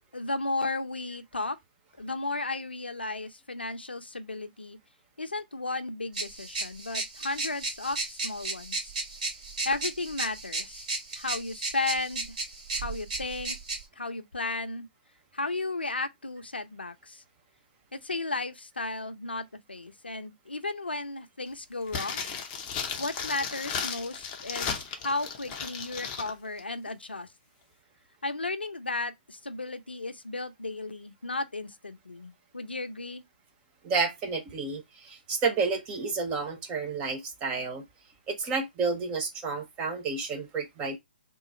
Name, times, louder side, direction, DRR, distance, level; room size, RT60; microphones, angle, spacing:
voice 1, 0.1-1.6 2.0-4.8 5.2-8.9 9.6-10.9 11.2-12.3 12.8-13.6 14.0-14.9 15.3-17.2 17.9-22.3 23.0-27.3 28.2-33.2, left 3 dB, 85° left, 0.6 m, -34 dB
sound 1, 6.1-13.8, right 3 dB, 45° right, 2.6 m, -35 dB
sound 2, 21.9-26.3 26.6-26.7, left 6 dB, 25° left, 0.7 m, -35 dB
voice 2, 33.8-37.8 38.3-41.0, right 4 dB, 20° right, 0.8 m, -30 dB
3.8 x 2.4 x 4.0 m
figure-of-eight pair, 130°, 5 cm